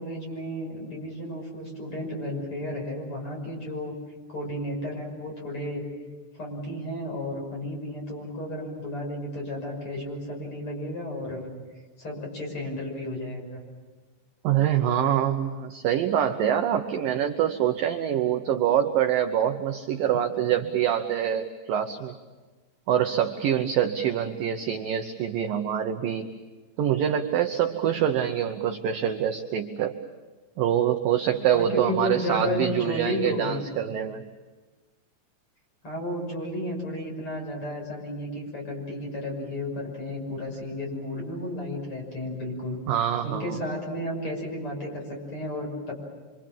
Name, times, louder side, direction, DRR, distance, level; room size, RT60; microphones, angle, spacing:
voice 1, 0.0-3.9 4.3-5.8 6.3-11.5 12.0-13.6 31.5-33.8 35.8-42.8 43.2-46.0, left 1 dB, 30° left, 0 dB, 6.8 m, -33 dB
voice 2, 14.4-22.2 22.9-26.3 26.8-29.9 30.6-34.2 42.9-43.6, right 10 dB, 75° right, 6 dB, 2.1 m, -25 dB
26.5 x 25.5 x 7.5 m, 1.3 s
omnidirectional pair, 5.2 m